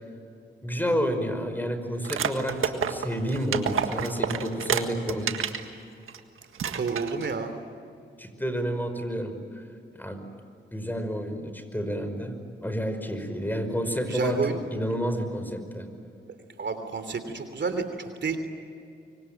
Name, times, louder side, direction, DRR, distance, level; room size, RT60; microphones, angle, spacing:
voice 1, 0.6-5.3 8.2-9.6 9.9-10.2 10.7-15.9, equal, 10° left, 8 dB, 5.4 m, -30 dB
sound 1, 2.0-5.6 6.1-6.2 6.5-7.3, right 7 dB, 85° right, 1.7 m, -29 dB
voice 2, 6.6-7.5 14.1-14.6 16.6-18.4, right 4 dB, 60° right, 8 dB, 3.2 m, -30 dB
24.5 x 24.5 x 9.1 m, 2.4 s
cardioid pair, 50°, 21 cm